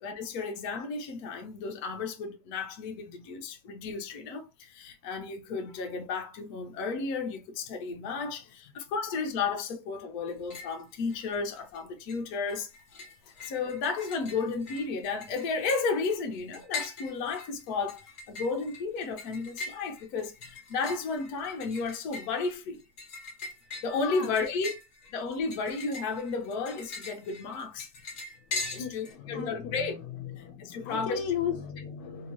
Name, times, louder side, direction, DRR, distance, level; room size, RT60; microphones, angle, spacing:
voice 1, 0.0-12.7 13.2-22.8 23.8-24.8 25.1-27.9 28.7-29.9 30.6-31.2, left 4 dB, 70° left, 1.2 m, -33 dB
sound 1, 10.3-10.8 11.1-11.8 12.1-29.1, left 3 dB, 50° left, 1.5 m, -42 dB
voice 2, 23.9-24.3 28.6-29.9 30.3-32.3, left 7 dB, 85° left, 1.3 m, -36 dB
3.6 x 2.8 x 2.9 m
omnidirectional pair, 1.8 m